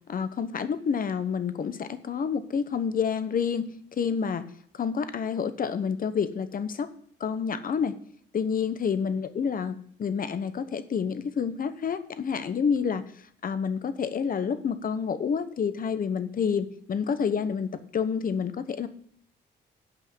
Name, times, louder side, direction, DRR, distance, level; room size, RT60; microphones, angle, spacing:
voice 1, 0.1-4.5 4.7-6.9 7.2-8.0 8.3-13.0 13.4-18.9, left 6 dB, 45° left, 11 dB, 1.0 m, -28 dB
8.4 x 5.5 x 7.8 m, 0.63 s
cardioid pair, 90°, 20 cm